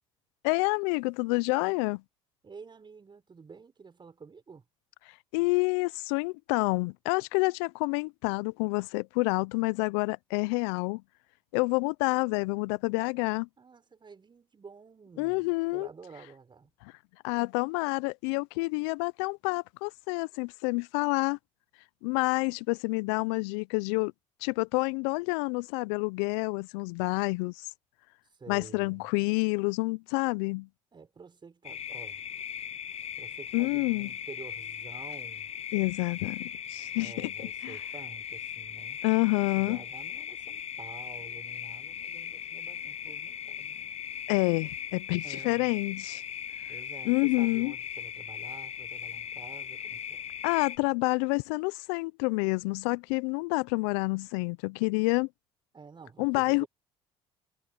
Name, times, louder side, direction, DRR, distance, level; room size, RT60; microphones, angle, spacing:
voice 1, 0.4-2.0 5.3-11.0 11.5-13.5 15.2-15.9 17.2-21.4 22.0-24.1 24.4-27.7 28.5-30.7 33.5-34.1 35.7-37.3 37.6-37.8 39.0-39.8 44.3-46.2 47.1-47.7 50.4-55.3 56.2-56.6, left 28 dB, 75° left, 0.6 m, -28 dB
voice 2, 2.4-4.6 13.6-16.7 28.3-29.1 30.9-32.2 33.2-35.5 36.9-39.0 39.4-43.9 45.2-45.7 46.7-50.2 55.7-56.7, right 5 dB, 30° right, 5.7 m, -49 dB
sound 1, 31.6-50.8, left 9 dB, 45° left, 1.1 m, -39 dB
hypercardioid pair, 60°, 15 cm